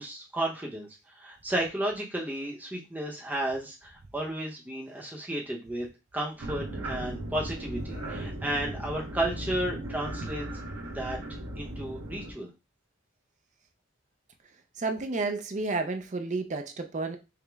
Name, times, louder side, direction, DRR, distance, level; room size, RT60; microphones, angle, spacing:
voice 1, 0.0-5.9 6.1-10.5 10.8-11.2 11.6-12.5, right 1 dB, 10° right, -1 dB, 0.8 m, -33 dB
sound 1, 6.4-12.3, right 1 dB, 85° right, 1.0 m, -37 dB
voice 2, 14.8-17.2, right 3 dB, 35° right, 7 dB, 0.4 m, -31 dB
4.9 x 2.1 x 3.4 m, 0.27 s
head